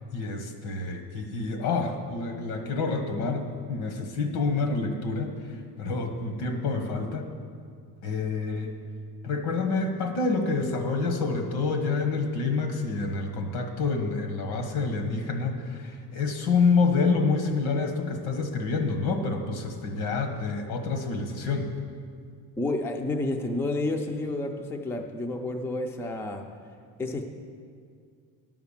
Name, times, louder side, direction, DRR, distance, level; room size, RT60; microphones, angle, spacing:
voice 1, 0.1-3.4 3.7-7.3 8.0-8.7 9.2-21.7, left 4 dB, 85° left, 5 dB, 1.5 m, -27 dB
voice 2, 22.6-26.4 27.0-27.3, left 2 dB, 5° left, 3 dB, 0.4 m, -30 dB
11.0 x 5.9 x 7.2 m, 2.2 s
cardioid pair, 165°, 38 cm